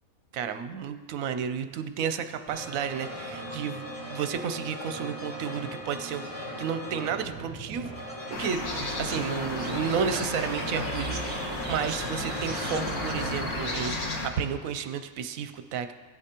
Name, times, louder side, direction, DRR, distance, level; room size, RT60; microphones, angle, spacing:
voice 1, 0.3-6.3 6.6-8.7 9.0-15.9, right 7 dB, 70° right, 9 dB, 1.0 m, -32 dB
sound 1, 2.5-13.3, equal, 15° left, 3.7 m, -39 dB
sound 2, 8.3-14.3, left 2 dB, 90° left, 1.7 m, -34 dB
sound 3, 8.7-14.0, right 3 dB, 40° right, 1.0 m, -38 dB
16.0 x 8.4 x 2.9 m, 1.4 s
omnidirectional pair, 1.5 m